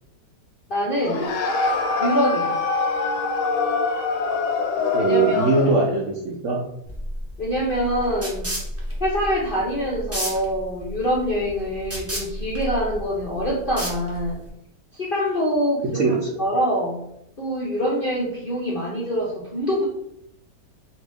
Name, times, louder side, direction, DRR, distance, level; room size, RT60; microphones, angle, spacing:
voice 1, 0.7-1.2 2.0-2.6 4.9-5.7 7.4-8.5 9.0-14.4 14.9-16.0 16.4-17.0 17.4-19.8, equal, 60° left, -6 dB, 0.5 m, -25 dB
sound 1, 1.0-5.8, left 4 dB, 85° left, 1.2 m, -24 dB
voice 2, 4.9-6.6 16.0-16.4, right 3 dB, 75° right, -3 dB, 0.7 m, -21 dB
sound 2, 6.9-14.5, equal, 25° right, 0.3 m, -32 dB
2.8 x 2.5 x 3.4 m, 0.77 s
omnidirectional pair, 1.9 m